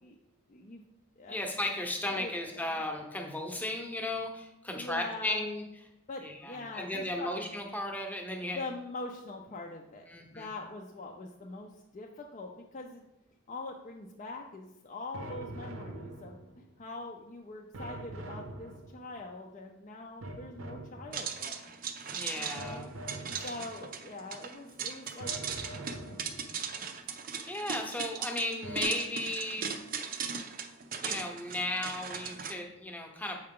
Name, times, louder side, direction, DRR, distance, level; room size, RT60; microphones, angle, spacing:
voice 1, 0.5-0.8 1.2-1.4 2.2-2.6 4.7-5.5 6.1-7.3 8.3-13.0 13.5-21.7 22.3-22.9 23.3-25.3 25.7-26.6 29.6-29.7, left 2 dB, 35° left, 0 dB, 0.5 m, -43 dB
voice 2, 1.3-5.6 6.2-8.6 10.1-10.5 22.1-22.9 23.4-23.5 27.4-29.7 31.0-33.4, left 1 dB, 10° left, 2 dB, 0.9 m, -35 dB
sound 1, 15.1-16.7 17.7-19.3 20.2-21.5 22.6-23.9 25.2-26.7 28.6-28.8, right 1 dB, 80° right, 0.8 m, -44 dB
sound 2, 21.1-32.5, right 6 dB, 45° right, 0.5 m, -38 dB
7.6 x 4.7 x 3.7 m, 0.95 s
head